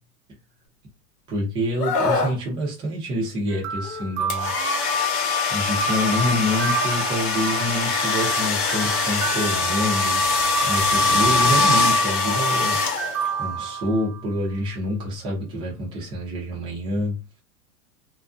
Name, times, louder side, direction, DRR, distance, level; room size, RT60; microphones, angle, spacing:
voice 1, 1.3-4.5 4.8-5.0 5.5-10.2 10.6-12.8 13.4-17.2, left 1 dB, 10° right, 0.5 m, -27 dB
Screaming, 1.8-2.4 3.8-4.1, left 3 dB, 85° left, 0.9 m, -23 dB
sound 1, 3.5-5.4 5.8-8.3 8.7-10.2 10.6-11.9 13.0-14.4, right 7 dB, 55° right, 0.9 m, -32 dB
sound 2, 4.3-13.4, left 3 dB, 45° left, 0.7 m, -22 dB
2.5 x 2.2 x 2.4 m
supercardioid pair, 150°, 46 cm